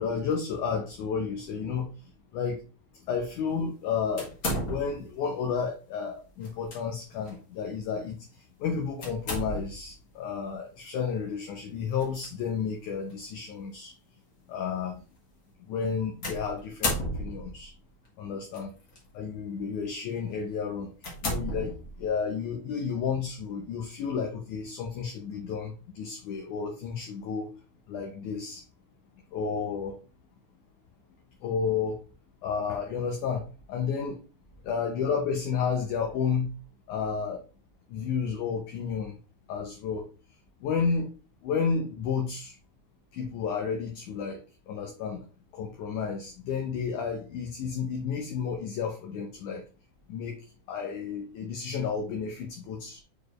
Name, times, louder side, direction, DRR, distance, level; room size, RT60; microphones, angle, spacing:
voice 1, 0.0-1.9 2.3-2.6 3.1-4.3 4.6-8.2 8.6-13.9 14.5-15.0 15.7-17.7 18.2-18.7 19.1-20.9 21.2-27.5 27.9-28.6 29.3-29.9 31.4-32.0 32.4-34.2 34.6-36.5 36.9-37.4 37.9-39.2 39.5-40.1 40.6-41.1 41.4-42.5 43.1-44.4 44.7-45.2 45.5-49.6 50.1-50.4 50.7-53.0, left 6 dB, 70° left, 2 dB, 2.1 m, -31 dB
sound 1, 4.2-5.2 6.4-6.8 7.3-7.4 9.0-9.9 12.0-12.3 13.1-13.2 16.2-17.6 18.5-19.0 19.6-19.8 20.3-20.4 21.0-22.2, equal, 35° left, 1.7 m, -33 dB
6.8 x 4.5 x 3.1 m, 0.34 s
omnidirectional pair, 4.2 m